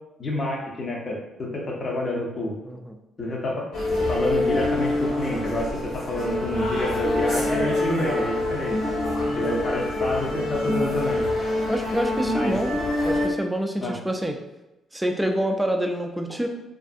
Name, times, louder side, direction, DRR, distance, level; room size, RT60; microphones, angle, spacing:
voice 1, 0.2-2.6 3.2-3.7 4.1-8.8 9.4-11.3 12.3-12.5 13.8-13.9, left 1 dB, 40° left, -1 dB, 0.6 m, -28 dB
sound 1, 3.7-13.3, left 2 dB, 75° left, 0.9 m, -26 dB
voice 2, 11.7-12.7 13.0-14.4 14.9-16.5, right 1 dB, 5° right, 4 dB, 0.3 m, -26 dB
2.5 x 2.4 x 2.5 m, 0.96 s
cardioid pair, 90°, 0 cm